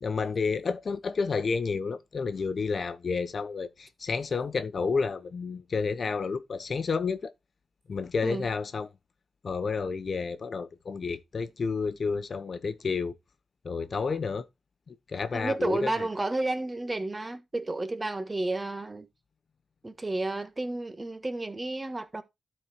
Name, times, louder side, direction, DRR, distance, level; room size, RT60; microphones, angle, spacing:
voice 1, 0.0-7.3 7.9-8.9 9.4-13.2 13.6-14.5 14.9-16.1, left 4 dB, 50° left, 1.0 m, -30 dB
voice 2, 15.3-19.1 19.8-22.2, right 2 dB, 25° right, 1.6 m, -31 dB
12.5 x 4.5 x 4.5 m
cardioid pair, 90°, 0 cm